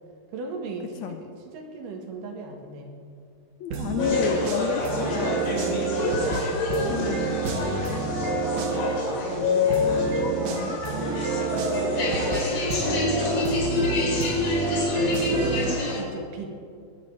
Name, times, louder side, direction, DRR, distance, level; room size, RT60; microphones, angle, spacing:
voice 1, 0.3-3.0 5.2-6.6 9.2-12.0 15.6-16.6, right 3 dB, 85° right, 3 dB, 3.3 m, -38 dB
voice 2, 3.6-5.8 6.9-8.0 10.4-10.8, left 9 dB, 80° left, 7 dB, 1.7 m, -33 dB
sound 1, 3.7-9.1 9.7-15.7, right 6 dB, 65° right, 2.1 m, -29 dB
sound 2, 4.0-16.0, left 3 dB, 55° left, 3.4 m, -26 dB
21.0 x 10.0 x 4.7 m, 2.3 s
omnidirectional pair, 3.7 m